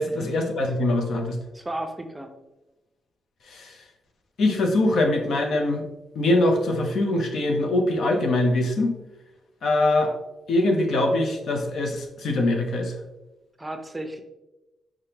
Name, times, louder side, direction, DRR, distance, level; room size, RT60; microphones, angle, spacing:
voice 1, 0.0-1.4 3.5-3.8 4.4-5.8 6.2-8.9 9.6-10.1 10.5-12.9, left 2 dB, 70° left, 3 dB, 0.7 m, -23 dB
voice 2, 1.5-2.3 13.6-14.2, right 1 dB, 15° right, 6 dB, 0.6 m, -34 dB
5.0 x 3.4 x 2.9 m, 1.0 s
cardioid pair, 75°, 0 cm